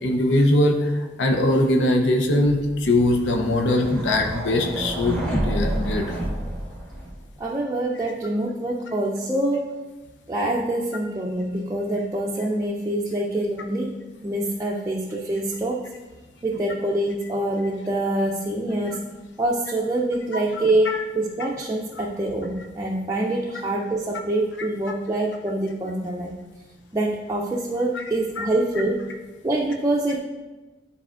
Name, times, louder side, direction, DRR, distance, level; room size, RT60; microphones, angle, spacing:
voice 1, 0.0-6.2 18.9-19.0 20.9-21.0 27.9-28.0 28.4-28.5, left 1 dB, 80° left, 3 dB, 0.7 m, -21 dB
sound 1, 2.7-7.4, right 1 dB, 5° left, 0.8 m, -29 dB
voice 2, 7.4-9.6 10.3-13.9 14.2-15.8 16.4-19.0 19.4-26.3 26.9-29.0 29.4-30.2, right 1 dB, 15° right, -4 dB, 0.4 m, -25 dB
9.9 x 4.1 x 2.4 m, 1.2 s
head